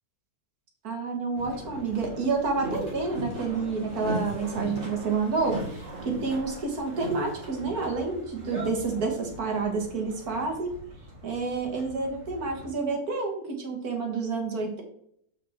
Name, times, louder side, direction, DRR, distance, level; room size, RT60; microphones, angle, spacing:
voice 1, 0.8-10.7 11.2-14.8, right 4 dB, 70° right, 2 dB, 2.0 m, -29 dB
Boat Water vehicle, 1.3-12.7, right 1 dB, 40° right, 2.7 m, -38 dB
7.2 x 5.9 x 3.6 m, 0.68 s
omnidirectional pair, 1.7 m